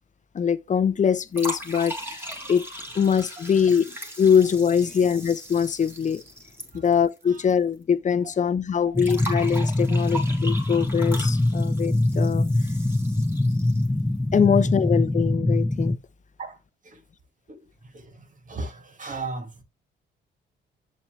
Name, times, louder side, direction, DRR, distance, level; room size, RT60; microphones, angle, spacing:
voice 1, 0.3-2.6 2.9-6.2 6.7-12.5 14.3-15.9, left 7 dB, 40° left, 0.8 m, -23 dB
sound 1, 1.3-7.5 7.8-7.9 9.0-14.0, right 1 dB, 10° right, 3.2 m, -38 dB
sound 2, 8.9-16.0, left 1 dB, 5° left, 0.6 m, -23 dB
voice 2, 16.4-17.0 17.5-19.6, right 3 dB, 40° right, 2.2 m, -38 dB
7.7 x 6.8 x 3.3 m
cardioid pair, 90°, 20 cm